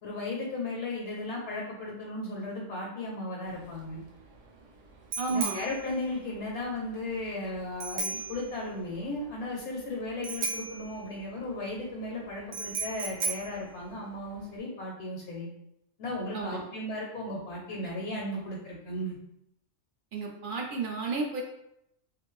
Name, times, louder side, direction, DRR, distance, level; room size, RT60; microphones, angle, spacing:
voice 1, 0.0-4.0 5.3-15.5 16.0-19.2, left 2 dB, 70° left, -2 dB, 0.9 m, -35 dB
Bicycle bell, 3.4-14.6, right 3 dB, 80° right, 0.9 m, -38 dB
voice 2, 5.2-5.6 16.3-16.6 20.1-21.4, right 4 dB, 60° right, -1 dB, 0.5 m, -32 dB
2.5 x 2.5 x 3.0 m, 0.79 s
omnidirectional pair, 1.3 m